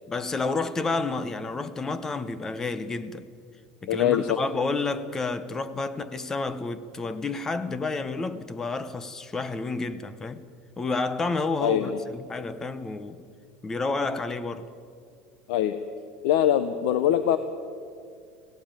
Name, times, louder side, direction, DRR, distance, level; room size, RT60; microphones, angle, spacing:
voice 1, 0.1-3.3 3.8-10.4 10.8-13.2 13.6-14.7, left 3 dB, 15° left, 0.8 m, -30 dB
voice 2, 3.9-4.4 11.6-12.0 15.5-15.8 16.2-17.4, left 11 dB, 70° left, 0.9 m, -23 dB
17.5 x 16.5 x 8.9 m
cardioid pair, 165°, 3 cm